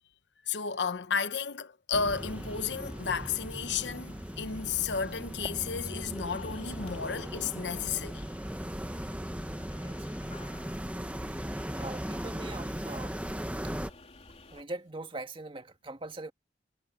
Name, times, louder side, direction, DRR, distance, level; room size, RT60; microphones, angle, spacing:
voice 1, 0.4-8.3, left 6 dB, 80° left, 0.9 m, -33 dB
sound 1, 1.9-13.9, equal, 10° right, 1.1 m, -38 dB
sound 2, 2.0-14.6, left 2 dB, 35° left, 3.4 m, -52 dB
voice 2, 11.8-13.2 14.5-16.3, right 2 dB, 30° right, 1.8 m, -41 dB
head